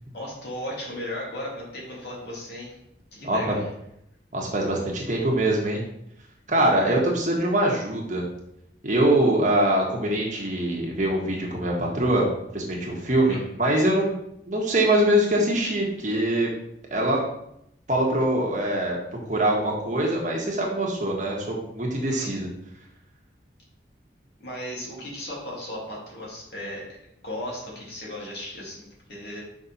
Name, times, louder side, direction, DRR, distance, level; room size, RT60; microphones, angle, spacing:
voice 1, 0.1-2.8 3.1-3.7 13.2-13.4 22.1-22.3 24.4-27.0 27.2-29.4, left 1 dB, 70° left, -4 dB, 2.6 m, -36 dB
voice 2, 3.2-3.6 4.3-5.8 6.5-8.2 8.8-12.3 12.5-14.1 14.5-16.5 16.9-17.2 17.9-19.0 19.3-22.5, right 1 dB, 45° right, -2 dB, 1.6 m, -23 dB
5.8 x 4.4 x 5.5 m, 0.78 s
head